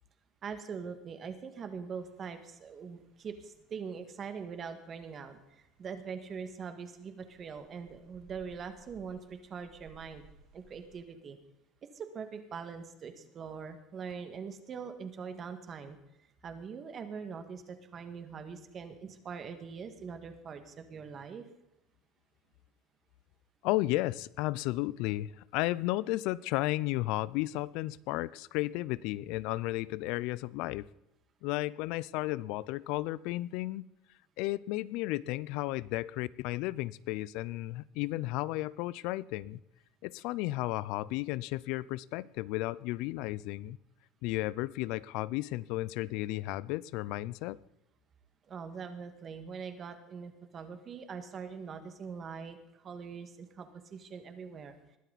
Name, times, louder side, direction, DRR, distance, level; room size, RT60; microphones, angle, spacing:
voice 1, 0.4-10.2 10.5-11.4 11.9-21.4 48.5-54.8, right 6 dB, 35° right, 8 dB, 1.8 m, -43 dB
Rain, 1.9-11.0, right 4 dB, 55° right, 6.9 m, -63 dB
voice 2, 23.6-30.8 31.4-33.9 34.4-39.6 40.0-43.8 44.2-47.6, left 18 dB, 70° left, 21 dB, 0.5 m, -33 dB
21.0 x 12.5 x 4.1 m, 0.89 s
cardioid pair, 135°, 0 cm